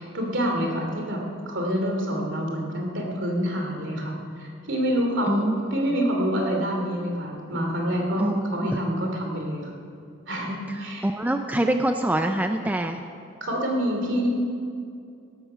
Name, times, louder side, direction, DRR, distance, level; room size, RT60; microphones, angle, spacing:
voice 1, 0.0-9.7 10.3-11.1 13.4-14.3, equal, 60° right, 1 dB, 2.9 m, -27 dB
voice 2, 5.3-5.6 8.2-8.8 11.0-13.0, right 1 dB, 10° right, 5 dB, 0.5 m, -25 dB
16.5 x 13.0 x 5.8 m, 2.5 s
head